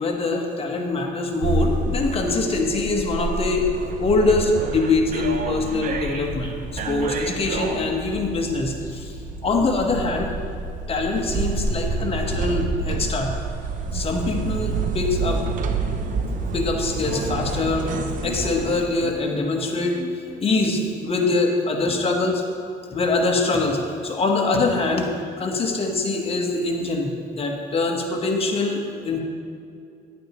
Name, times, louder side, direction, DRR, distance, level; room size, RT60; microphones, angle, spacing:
voice 1, 0.0-3.6 4.0-9.0 9.4-10.3 10.9-13.3 13.9-15.4 16.5-17.9 18.2-22.4 22.9-25.1 25.4-29.2, left 3 dB, 35° left, 1 dB, 1.2 m, -23 dB
sound 1, 1.4-18.9, right 4 dB, 50° right, 0.7 m, -29 dB
sound 2, 5.9-18.5, left 1 dB, 15° left, 1.8 m, -35 dB
10.5 x 8.9 x 3.0 m, 2.4 s
cardioid pair, 110°, 17 cm